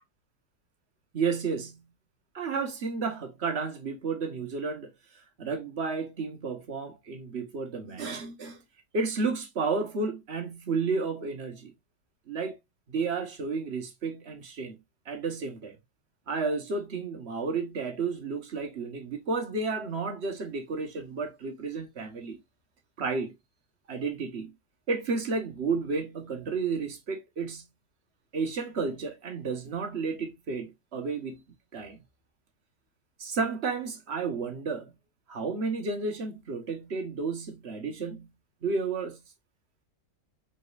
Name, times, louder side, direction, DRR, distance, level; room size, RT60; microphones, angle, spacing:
voice 1, 1.1-1.8 2.3-4.9 5.4-8.6 8.9-11.7 12.3-12.6 12.9-14.8 15.1-15.8 16.3-22.4 23.0-23.3 23.9-24.5 24.9-27.6 28.3-31.4 31.7-32.0 33.2-34.9 35.3-38.3 38.6-39.2, right 4 dB, 45° right, 1.3 m, -32 dB
5.0 x 4.3 x 2.4 m
omnidirectional pair, 1.8 m